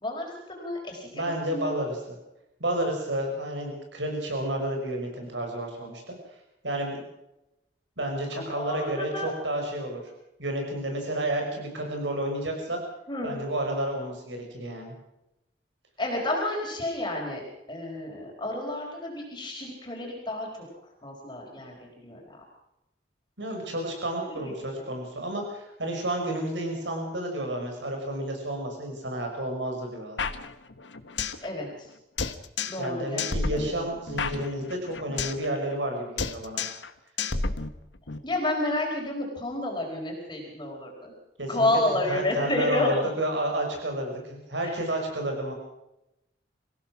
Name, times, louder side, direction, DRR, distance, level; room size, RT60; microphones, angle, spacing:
voice 1, 0.0-1.8 8.3-9.3 13.1-13.4 16.0-17.4 17.7-20.5 21.0-22.4 24.3-24.5 31.4-31.7 32.7-33.7 38.2-41.1 41.5-42.9 44.6-44.8, left 1 dB, 25° left, -1 dB, 4.6 m, -30 dB
voice 2, 1.1-2.2 2.6-6.1 6.6-7.0 8.0-10.0 10.4-12.8 13.2-14.9 23.4-30.2 32.8-36.6 41.4-41.7 42.1-45.5, right 1 dB, 85° right, 2 dB, 5.6 m, -31 dB
sound 1, 30.2-31.5 31.7-31.8 32.2-32.9 33.2-35.5 35.7-35.9 36.2-36.9 37.2-38.2, left 4 dB, 90° left, 1.4 m, -31 dB
26.5 x 16.5 x 6.0 m, 0.89 s
head